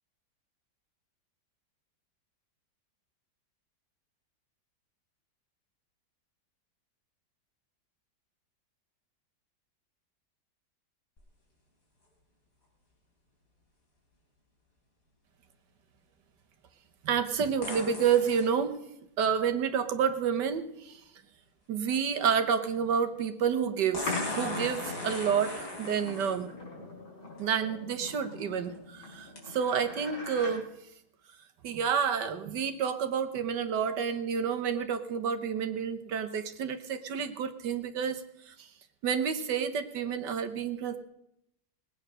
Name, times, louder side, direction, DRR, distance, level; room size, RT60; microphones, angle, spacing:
sound 1, 11.2-11.3 17.6-18.5 20.5-20.6 23.9-26.4 27.4-27.5 28.1-28.4 29.4-29.5, left 2 dB, 50° left, 3.9 m, -38 dB
voice 1, 17.0-18.8 19.2-21.0 21.7-26.5 27.4-30.6 31.6-38.2 38.5-38.7 39.0-41.0, right 7 dB, 85° right, 7 dB, 1.7 m, -29 dB
sound 2, 24.1-30.5, left 3 dB, 85° left, 4.9 m, -41 dB
18.5 x 8.8 x 6.2 m, 0.79 s
omnidirectional pair, 1.8 m